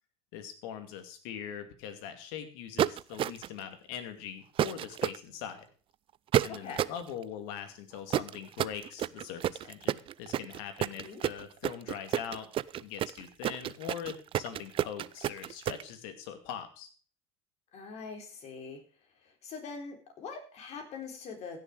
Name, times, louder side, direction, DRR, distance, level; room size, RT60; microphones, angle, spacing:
voice 1, 0.3-5.7 6.4-12.5 12.7-16.9, left 8 dB, 75° left, 8 dB, 2.4 m, -42 dB
sound 1, 2.8-3.6 4.6-5.2 6.3-7.0 8.1-15.8, right 11 dB, 40° right, 0.4 m, -30 dB
voice 2, 6.5-6.9 11.0-11.2 17.7-18.8 19.4-21.6, left 5 dB, 50° left, 3 dB, 3.9 m, -43 dB
15.5 x 6.9 x 5.0 m, 0.39 s
supercardioid pair, 90°, 14 cm